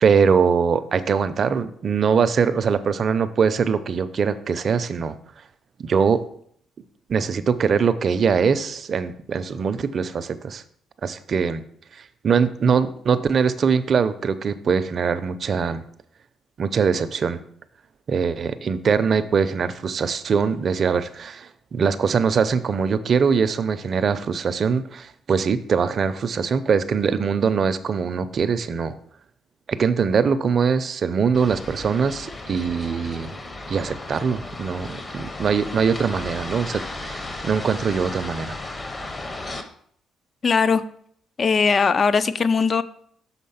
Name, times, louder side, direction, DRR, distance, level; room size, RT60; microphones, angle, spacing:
voice 1, 0.0-5.1 5.8-6.2 7.1-10.6 11.0-11.6 12.2-15.8 16.6-17.4 18.1-29.0 29.7-33.3 33.7-38.5, right 6 dB, 50° right, 13 dB, 0.5 m, -22 dB
sound 1, 31.3-39.6, left 2 dB, 25° left, 0.9 m, -35 dB
voice 2, 40.4-40.8 41.4-42.8, left 5 dB, 40° left, 14 dB, 0.4 m, -19 dB
6.5 x 4.1 x 5.5 m, 0.63 s
cardioid pair, 90°, 0 cm